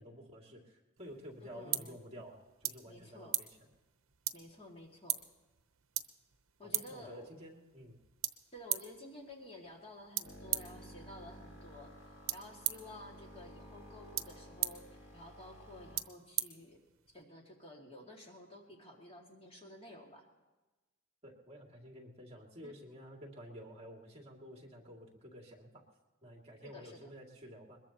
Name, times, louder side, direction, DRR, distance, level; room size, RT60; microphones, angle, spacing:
voice 1, 0.0-3.5 6.7-8.0 21.2-25.8 26.2-27.8, equal, 30° right, 0 dB, 2.5 m, -51 dB
sound 1, 1.0-17.2, right 13 dB, 65° right, 0.8 m, -42 dB
voice 2, 1.4-2.0 2.9-3.4 4.3-5.2 6.6-7.3 8.5-12.0 12.3-16.8 17.1-20.3 22.6-22.7 26.6-27.1, left 1 dB, 30° left, 0 dB, 2.3 m, -52 dB
sound 2, 10.2-16.0, equal, 85° left, 4.2 m, -53 dB
21.5 x 21.5 x 3.0 m, 1.1 s
head